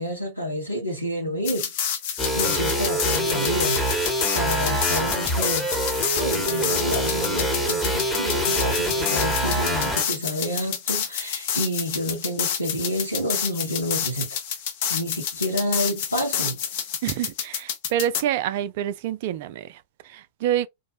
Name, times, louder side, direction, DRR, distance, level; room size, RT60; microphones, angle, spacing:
voice 1, 0.0-1.7 2.3-14.4 14.9-16.6, equal, 90° left, 1.0 m, -29 dB
sound 1, 1.4-18.2, left 8 dB, 50° left, 0.6 m, -29 dB
sound 2, 2.2-10.0, equal, 10° left, 0.9 m, -25 dB
voice 2, 17.0-20.7, right 11 dB, 50° right, 0.3 m, -27 dB
2.6 x 2.1 x 2.7 m
figure-of-eight pair, 90°, 0 cm